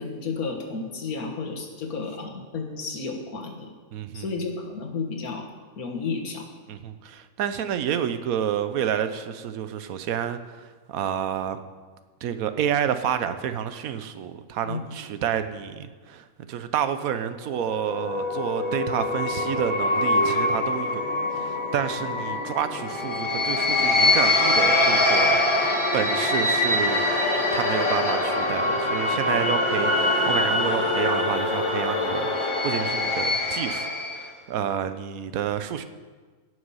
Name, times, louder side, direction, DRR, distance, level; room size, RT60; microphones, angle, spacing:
voice 1, 0.0-3.7 4.1-5.5 5.8-6.5 14.6-14.9, left 4 dB, 75° left, 3 dB, 1.9 m, -32 dB
voice 2, 3.9-4.4 6.7-11.6 12.2-21.0 21.3-27.1 27.5-35.9, right 9 dB, 75° right, 10 dB, 1.1 m, -29 dB
sound 1, 17.5-34.3, left 2 dB, 20° left, 1.4 m, -24 dB
17.0 x 6.3 x 5.5 m, 1.5 s
omnidirectional pair, 1.5 m